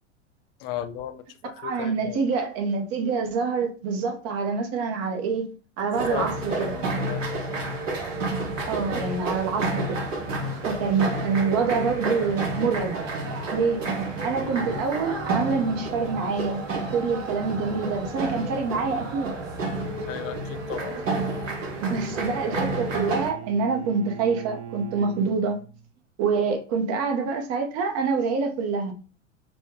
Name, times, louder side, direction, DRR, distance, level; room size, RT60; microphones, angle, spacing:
voice 1, 0.6-2.2 6.1-7.4 7.7-7.8 10.4-10.6 20.1-21.0 21.6-21.7, left 11 dB, 50° left, 0.5 m, -36 dB
voice 2, 1.6-6.7 8.7-10.0 10.6-13.0 13.5-13.9 14.2-19.3 21.8-25.6 26.2-28.9, right 5 dB, 40° right, 0.9 m, -26 dB
sound 1, 5.9-23.3, right 2 dB, 85° right, 1.0 m, -30 dB
Bowed string instrument, 21.8-25.9, right 8 dB, 15° right, 0.3 m, -41 dB
4.2 x 2.2 x 3.1 m
hypercardioid pair, 100°, 38 cm